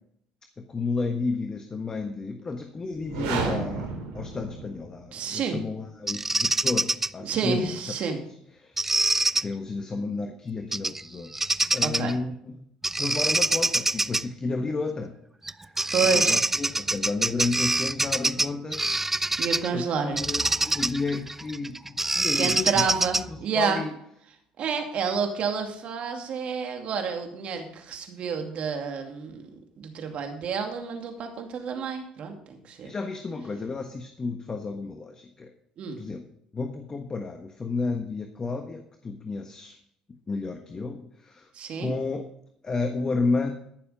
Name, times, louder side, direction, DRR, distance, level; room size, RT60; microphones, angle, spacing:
voice 1, 0.6-7.9 8.5-9.0 9.4-11.3 11.7-12.6 13.0-15.2 16.0-19.0 19.7-22.8 23.3-23.9 32.8-35.5 36.0-36.2 36.5-39.8 40.3-41.5 41.8-42.3 42.6-43.5, left 3 dB, 30° left, 5 dB, 1.3 m, -32 dB
sound 1, 2.9-5.1, right 4 dB, 85° right, 3.2 m, -32 dB
voice 2, 5.1-5.6 7.2-8.2 11.8-12.1 15.9-16.4 19.4-20.2 22.4-23.8 24.6-29.5 29.8-32.9 35.8-36.0 41.5-41.9, right 5 dB, 55° right, 4 dB, 2.6 m, -29 dB
Bird vocalization bird call bird song, 6.1-7.1 8.8-9.4 10.7-11.0 11.3-12.1 12.8-14.2 15.5-15.6 15.8-19.7 20.2-23.4, right 2 dB, 10° right, 0.4 m, -25 dB
14.5 x 7.0 x 5.1 m, 0.70 s
supercardioid pair, 75°, 2 cm